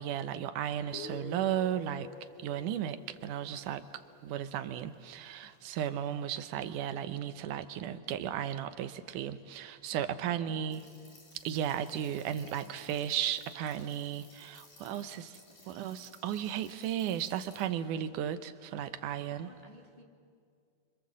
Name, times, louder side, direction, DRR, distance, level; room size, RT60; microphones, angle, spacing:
voice 1, 0.0-2.1 2.4-10.8 11.3-15.4 15.7-19.5, right 10 dB, 80° right, 11 dB, 2.3 m, -35 dB
Guitar, 0.9-4.4, left 5 dB, 55° left, 1.5 m, -49 dB
voice 2, 9.9-10.7 12.6-12.9 14.8-15.8 17.5-18.1 19.1-20.0, left 1 dB, 15° left, -1 dB, 2.3 m, -57 dB
sound 1, 10.7-17.6, left 3 dB, 75° left, 5.6 m, -58 dB
28.5 x 25.5 x 7.5 m, 2.2 s
omnidirectional pair, 3.6 m